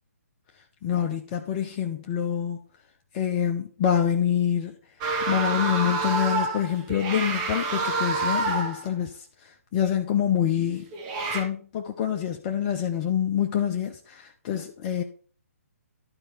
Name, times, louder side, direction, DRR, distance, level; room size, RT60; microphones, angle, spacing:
voice 1, 0.8-2.7 3.1-4.7 5.3-9.1 9.4-10.9 11.3-15.0, left 9 dB, 30° left, 0.7 m, -26 dB
sound 1, 5.0-8.9 10.9-11.4, right 3 dB, 30° right, 1.9 m, -27 dB
12.0 x 4.5 x 4.2 m
figure-of-eight pair, 140°, 8 cm